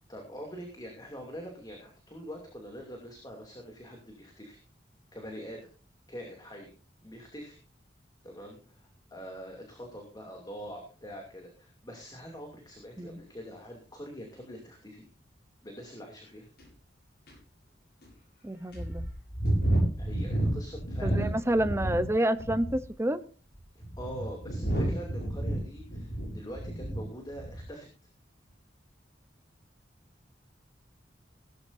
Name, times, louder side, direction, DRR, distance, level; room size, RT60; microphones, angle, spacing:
voice 1, 0.1-4.6 5.1-5.7 6.1-6.7 7.0-7.6 8.2-15.1 15.6-16.5 20.0-21.3 22.3-22.4 23.7-27.9, equal, 20° left, 2 dB, 2.6 m, -44 dB
sound 1, 16.6-16.7 17.3-17.4 18.0-18.1 18.7-22.1 22.4-22.9 23.6-27.1 27.3-27.7, right 1 dB, 60° left, 7.5 m, -30 dB
voice 2, 18.4-19.0 21.0-23.2, right 1 dB, 15° right, 11 dB, 0.7 m, -28 dB
17.0 x 13.0 x 2.7 m, 0.36 s
head